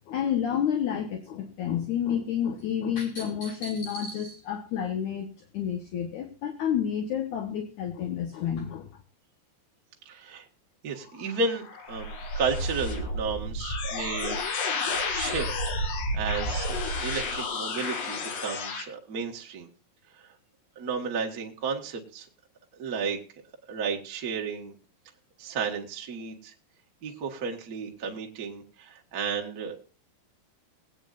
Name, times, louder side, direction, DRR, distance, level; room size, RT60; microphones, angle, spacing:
voice 1, 0.1-5.3 5.5-8.9, left 8 dB, 65° left, 5 dB, 2.0 m, -29 dB
voice 2, 10.0-10.5 10.8-14.4 14.9-19.7 20.1-20.3 20.7-22.3 22.8-23.2 23.7-24.7 25.4-26.5 27.0-29.8, right 5 dB, 60° right, 1 dB, 0.9 m, -33 dB
sound 1, 11.1-18.8, left 2 dB, 85° left, 4.0 m, -31 dB
21.5 x 9.0 x 2.5 m, 0.37 s
omnidirectional pair, 4.8 m